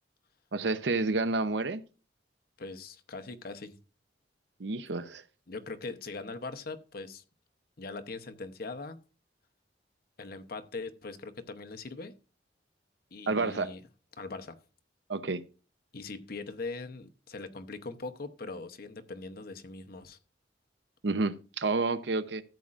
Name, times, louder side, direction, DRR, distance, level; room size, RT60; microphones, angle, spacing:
voice 1, 0.5-1.8 4.6-5.2 13.3-13.7 15.1-15.4 21.0-22.4, right 3 dB, 70° right, 0.7 m, -29 dB
voice 2, 2.6-3.8 5.5-7.2 7.8-9.0 10.2-12.1 13.1-13.8 14.2-14.6 15.9-20.2, left 3 dB, 55° left, 0.9 m, -41 dB
13.5 x 8.5 x 2.5 m
head